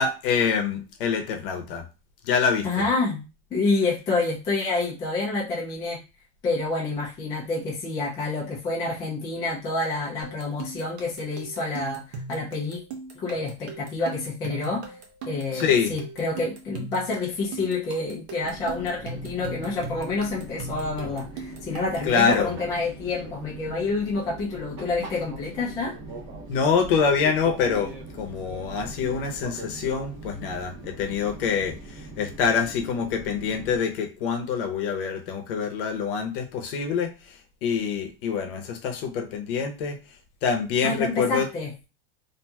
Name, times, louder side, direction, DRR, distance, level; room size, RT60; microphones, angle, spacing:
voice 1, 0.0-1.8 2.2-2.7 15.5-15.9 22.0-22.5 26.5-40.0 40.4-41.5, left 6 dB, 55° left, 4 dB, 0.8 m, -25 dB
voice 2, 2.6-6.0 6.4-12.8 13.1-14.9 15.3-26.0 40.8-41.7, left 3 dB, 10° left, -4 dB, 0.3 m, -28 dB
sound 1, 10.2-22.5, right 3 dB, 80° right, 0.9 m, -39 dB
Fixed-wing aircraft airplane, 18.4-33.8, right 2 dB, 35° right, 0.6 m, -41 dB
2.8 x 2.6 x 2.3 m, 0.30 s
supercardioid pair, 165°, 32 cm